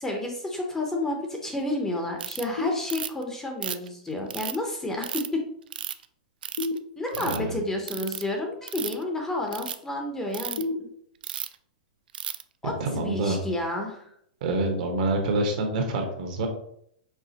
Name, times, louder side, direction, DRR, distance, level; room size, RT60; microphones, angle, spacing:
voice 1, 0.0-5.2 7.0-10.9 12.6-14.1, left 1 dB, 10° left, 2 dB, 0.6 m, -31 dB
Ratchet pawl, 2.2-2.4 2.9-3.2 3.6-4.6 5.0-5.3 5.7-6.0 6.4-6.8 7.1-7.4 7.9-8.2 8.6-9.0 9.5-9.8 10.3-10.6 11.2-11.6 12.1-12.4, right 10 dB, 80° right, 0.3 m, -33 dB
sound 1, 2.6-3.5 6.6-7.6 10.6-11.6, left 2 dB, 85° left, 0.7 m, -34 dB
voice 2, 7.2-7.6 12.8-13.4 14.4-16.5, right 2 dB, 55° right, 3 dB, 1.1 m, -27 dB
4.9 x 3.4 x 2.8 m, 0.68 s
hypercardioid pair, 150°, 5 cm